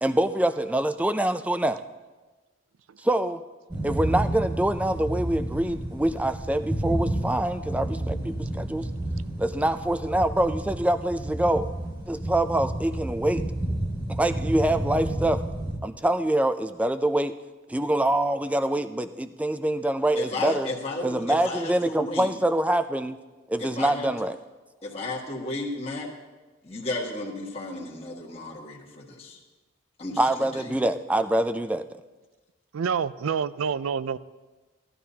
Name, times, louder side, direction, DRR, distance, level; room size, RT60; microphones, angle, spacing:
voice 1, 0.0-1.8 3.0-3.4 3.8-8.9 9.4-11.7 12.1-13.4 14.1-15.4 15.8-17.3 17.7-20.7 21.0-23.2 23.5-24.4 30.2-31.9, right 1 dB, 5° right, 10 dB, 0.3 m, -25 dB
sound 1, 3.7-15.8, right 1 dB, 20° right, 1.6 m, -31 dB
voice 2, 20.1-22.3 23.6-24.1 24.8-26.1 26.6-29.4 30.0-30.8, left 2 dB, 30° left, -3 dB, 1.6 m, -33 dB
voice 3, 32.7-34.2, right 6 dB, 85° right, 16 dB, 0.4 m, -27 dB
18.0 x 12.5 x 2.8 m, 1.2 s
head